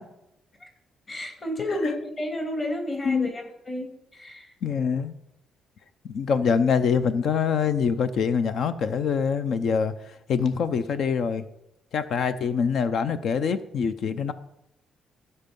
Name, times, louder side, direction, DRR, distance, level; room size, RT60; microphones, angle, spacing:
voice 1, 1.1-4.5, left 1 dB, 35° left, 2 dB, 3.1 m, -31 dB
voice 2, 4.6-5.1 6.1-9.9 10.3-11.4 11.9-14.3, left 6 dB, 65° left, 12 dB, 0.6 m, -24 dB
16.0 x 5.5 x 5.3 m, 0.86 s
cardioid pair, 90°, 0 cm